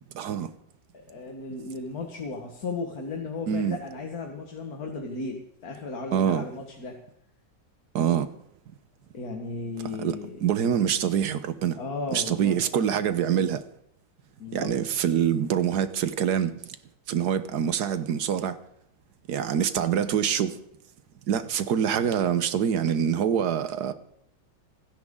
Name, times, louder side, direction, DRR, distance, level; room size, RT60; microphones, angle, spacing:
voice 1, 0.1-0.5 3.5-3.8 6.1-6.4 7.9-8.3 10.0-10.2 10.4-11.8 12.1-13.6 14.5-16.7 17.1-18.6 19.3-20.6 21.3-23.9, right 8 dB, 65° right, 1.4 m, -25 dB
voice 2, 1.1-7.0 9.1-10.4 11.8-12.6 14.4-14.7, left 3 dB, 55° left, 1.9 m, -35 dB
28.0 x 10.5 x 3.7 m
omnidirectional pair, 2.0 m